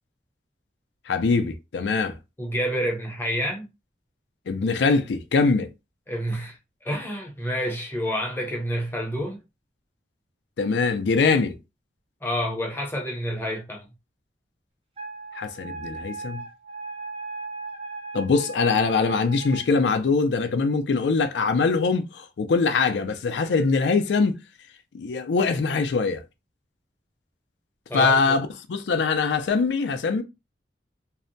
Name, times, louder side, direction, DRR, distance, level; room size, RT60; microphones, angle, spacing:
voice 1, 1.1-2.2 4.5-5.7 10.6-11.6 15.3-16.4 18.1-24.4 24.9-26.2 27.9-30.2, left 4 dB, 80° left, 0.4 m, -23 dB
voice 2, 2.4-3.7 6.1-6.6 6.8-9.4 11.3-11.4 12.2-13.9 27.9-28.4, equal, 15° left, 0.6 m, -28 dB
Wind instrument woodwind instrument, 15.0-19.7, right 3 dB, 35° right, 0.7 m, -37 dB
2.6 x 2.1 x 2.6 m
head